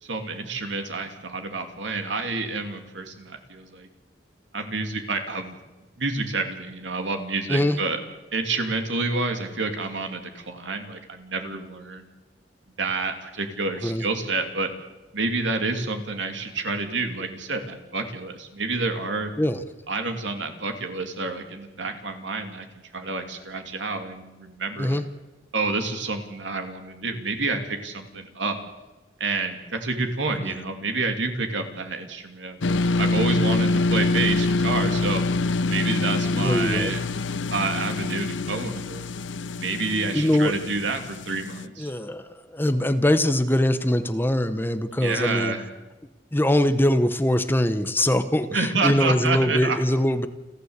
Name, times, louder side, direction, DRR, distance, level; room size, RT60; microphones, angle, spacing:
voice 1, 0.0-3.9 4.5-5.6 6.0-8.0 8.3-12.0 12.8-14.7 15.1-19.3 19.9-22.7 22.9-25.0 25.5-28.6 29.2-35.2 35.7-37.0 37.5-39.0 39.5-41.9 44.9-45.6 48.5-49.8, right 3 dB, 80° right, 5 dB, 2.8 m, -29 dB
sound 1, 32.6-41.7, left 3 dB, 80° left, 0.7 m, -25 dB
voice 2, 36.3-36.9 40.1-40.5 41.8-42.2 42.5-45.5 46.3-50.3, left 1 dB, 10° left, 10 dB, 0.9 m, -22 dB
29.5 x 11.5 x 8.2 m, 1.1 s
head